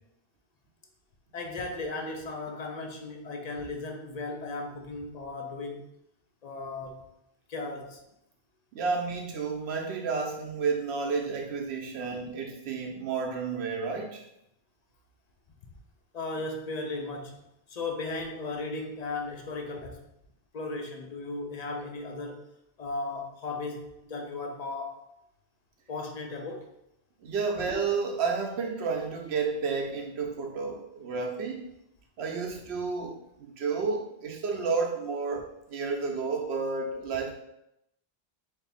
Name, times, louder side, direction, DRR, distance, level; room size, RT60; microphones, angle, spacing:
voice 1, 1.3-5.9 6.4-7.0 7.5-8.0 12.0-12.1 16.1-20.1 20.5-22.4 22.8-25.0 25.9-26.7, left 3 dB, 50° left, 2 dB, 0.6 m, -36 dB
voice 2, 8.7-14.3 27.2-31.6 32.2-37.4, right 4 dB, 85° right, 2 dB, 0.9 m, -31 dB
3.3 x 2.6 x 4.1 m, 0.80 s
omnidirectional pair, 1.1 m